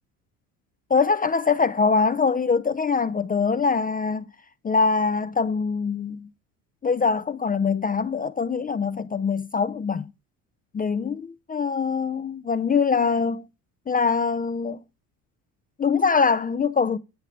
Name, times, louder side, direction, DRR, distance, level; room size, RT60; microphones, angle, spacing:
voice 1, 0.9-4.3 4.6-6.3 6.8-10.1 10.7-13.5 13.9-14.8 15.8-17.0, left 5 dB, 20° left, 0.5 m, -23 dB
10.0 x 5.5 x 3.4 m
hypercardioid pair, 75°, 44 cm